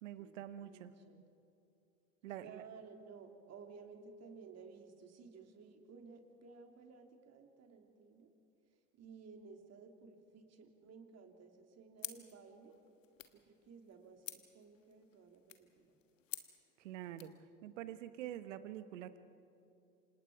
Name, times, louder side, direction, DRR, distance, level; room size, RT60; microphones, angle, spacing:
voice 1, 0.0-1.3 2.2-2.6 16.8-17.3 17.6-19.2, right 11 dB, 75° right, 12 dB, 1.3 m, -46 dB
voice 2, 0.6-1.2 2.3-8.3 8.9-12.8 13.3-15.9, right 5 dB, 40° right, 4 dB, 3.0 m, -56 dB
sound 1, 12.0-17.4, left 10 dB, 85° left, 1.3 m, -52 dB
28.0 x 26.0 x 4.8 m, 2.7 s
hypercardioid pair, 70°, 38 cm